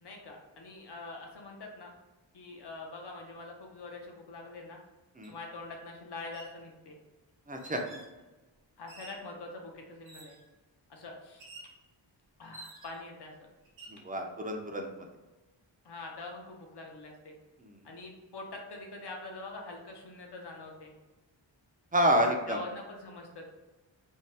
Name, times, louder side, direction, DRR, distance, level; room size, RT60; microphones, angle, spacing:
voice 1, 0.0-1.9 2.3-4.8 5.3-7.0 8.8-10.4 10.9-11.4 12.4-13.3 15.8-17.3 17.8-20.9 22.5-23.5, left 3 dB, 55° left, 1 dB, 0.7 m, -44 dB
sound 1, 5.2-5.3 6.2-6.6 7.6-8.1 8.9-9.3 10.0-10.5 11.4-11.8 12.5-13.1 13.6-14.0, right 2 dB, 75° right, 0.8 m, -50 dB
voice 2, 7.5-7.8 13.9-15.1 17.6-17.9 21.9-22.6, equal, 20° right, 2 dB, 0.4 m, -29 dB
2.7 x 2.2 x 3.2 m, 1.1 s
wide cardioid pair, 80°, 47 cm